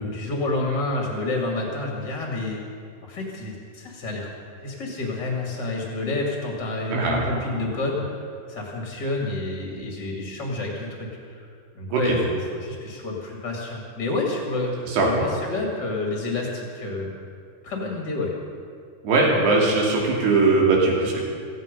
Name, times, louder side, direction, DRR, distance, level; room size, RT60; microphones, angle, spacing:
voice 1, 0.0-2.6 3.0-4.3 4.6-8.2 8.5-11.5 11.7-17.1 17.6-18.3, left 2 dB, 30° left, -1 dB, 2.4 m, -29 dB
voice 2, 6.9-7.2 11.9-12.2 14.9-15.1 19.0-21.2, right 3 dB, 75° right, -2 dB, 4.8 m, -20 dB
17.0 x 15.5 x 5.4 m, 2.2 s
omnidirectional pair, 4.8 m